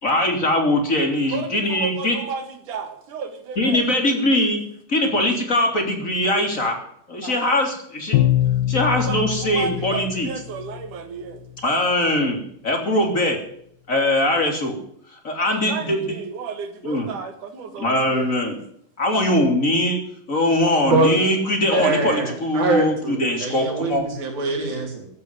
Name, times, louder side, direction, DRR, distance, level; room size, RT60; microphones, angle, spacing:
voice 1, 0.0-2.1 3.6-4.6 4.9-6.8 7.1-8.1 8.7-10.3 11.6-12.4 12.6-13.4 13.9-14.7 15.2-16.0 16.8-17.1 17.8-18.6 19.0-20.0 20.3-24.0, left 1 dB, 25° left, 3 dB, 3.2 m, -21 dB
voice 2, 1.3-3.9 7.2-7.6 8.9-11.4 15.5-18.4, right 6 dB, 65° right, 7 dB, 3.3 m, -33 dB
Bowed string instrument, 8.1-10.9, left 13 dB, 80° left, 2.5 m, -23 dB
voice 3, 21.7-25.1, right 3 dB, 90° right, 1 dB, 5.9 m, -23 dB
15.0 x 8.7 x 9.5 m, 0.68 s
omnidirectional pair, 4.0 m